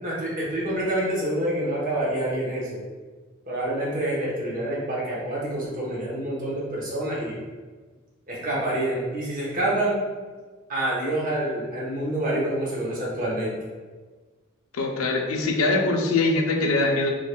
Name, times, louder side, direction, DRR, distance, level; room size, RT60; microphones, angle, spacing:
voice 1, 0.0-2.8 3.5-7.4 8.3-10.0 10.7-13.6, right 1 dB, 40° right, -5 dB, 1.0 m, -27 dB
voice 2, 14.7-17.1, left 2 dB, 85° left, 2 dB, 0.5 m, -22 dB
3.7 x 3.1 x 2.2 m, 1.4 s
head